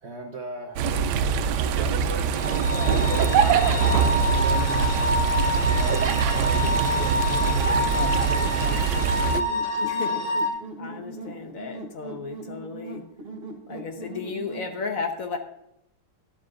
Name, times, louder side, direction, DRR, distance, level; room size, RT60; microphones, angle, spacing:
voice 1, 0.0-1.0 1.4-4.9 5.6-9.3, right 4 dB, 50° right, 3 dB, 0.9 m, -37 dB
sound 1, 0.8-9.4, right 6 dB, 75° right, 1.2 m, -23 dB
sound 2, 2.3-10.5, left 2 dB, 75° left, 2.0 m, -27 dB
sound 3, 6.0-14.7, right 2 dB, 35° right, 1.5 m, -40 dB
voice 2, 9.8-13.0 13.7-15.4, left 4 dB, 55° left, 5 dB, 1.4 m, -34 dB
12.5 x 11.5 x 2.5 m, 0.82 s
omnidirectional pair, 1.9 m